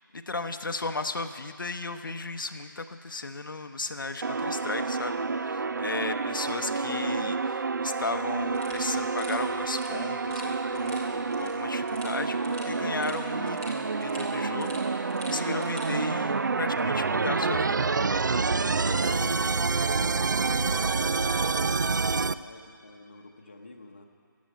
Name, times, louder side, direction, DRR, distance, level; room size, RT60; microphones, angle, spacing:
voice 1, 0.1-17.8 18.3-18.4, left 3 dB, 75° left, 7 dB, 0.8 m, -35 dB
sound 1, 4.2-22.3, right 4 dB, 60° right, 0.4 m, -28 dB
sound 2, 8.5-15.9, equal, 10° right, 0.9 m, -46 dB
voice 2, 18.9-20.7 21.2-24.1, left 2 dB, 30° left, 3 dB, 0.9 m, -47 dB
14.5 x 7.4 x 9.2 m, 2.5 s
figure-of-eight pair, 180°, 11 cm